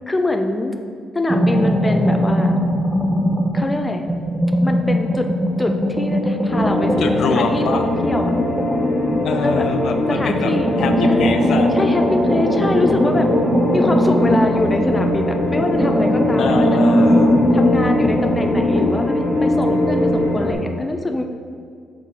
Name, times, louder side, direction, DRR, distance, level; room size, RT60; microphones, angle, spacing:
voice 1, 0.1-0.7 1.1-2.5 3.5-4.0 4.6-5.3 5.6-8.3 9.4-9.6 10.1-10.7 11.1-11.3 11.7-13.3 13.7-16.8 17.5-21.2, left 2 dB, 20° left, 5 dB, 0.5 m, -24 dB
sound 1, 1.3-3.7 4.1-9.7 10.2-15.2 15.5-18.9, equal, 10° right, 0.8 m, -20 dB
sound 2, 6.5-20.5, left 1 dB, 50° left, 1.4 m, -21 dB
voice 2, 7.0-7.8 9.2-10.5 10.8-11.7 16.4-17.5, left 6 dB, 70° left, 6 dB, 0.4 m, -25 dB
5.9 x 3.9 x 4.7 m, 2.2 s
cardioid pair, 90°, 0 cm